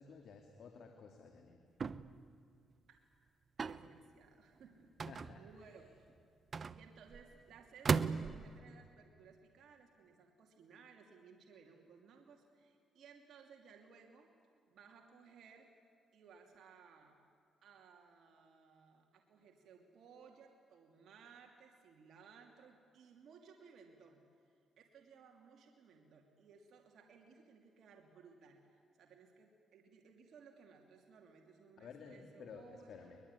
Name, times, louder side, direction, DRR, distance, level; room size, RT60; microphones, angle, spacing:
voice 1, 0.0-1.6 5.1-5.7 31.8-33.2, left 5 dB, 65° left, 4 dB, 2.3 m, -54 dB
sound 1, 1.8-2.2 3.6-3.9 5.0-5.6 6.5-7.2 7.9-8.6, right 5 dB, 40° right, 0.7 m, -36 dB
voice 2, 3.6-4.9 5.4-6.1 6.7-14.3 14.7-15.7 16.1-17.2 17.6-24.2 24.5-33.2, right 5 dB, 65° right, 1 dB, 2.7 m, -61 dB
22.5 x 21.5 x 9.7 m, 2.3 s
cardioid pair, 90°, 0 cm